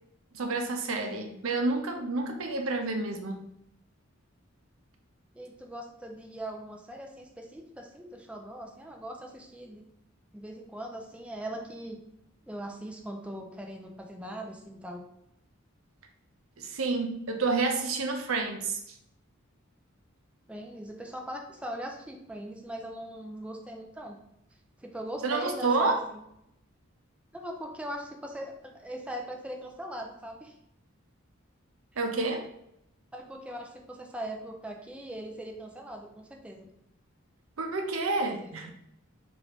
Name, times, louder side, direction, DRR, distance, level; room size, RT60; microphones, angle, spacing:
voice 1, 0.3-3.5 16.6-18.8 25.2-26.0 32.0-32.5 37.6-38.7, right 3 dB, 85° right, 4 dB, 0.6 m, -29 dB
voice 2, 5.3-9.9 10.3-12.0 12.5-15.0 20.5-24.2 24.8-26.2 27.3-30.5 33.1-36.7 38.2-38.7, right 1 dB, 5° right, 1 dB, 0.4 m, -40 dB
4.9 x 2.6 x 3.0 m, 0.78 s
head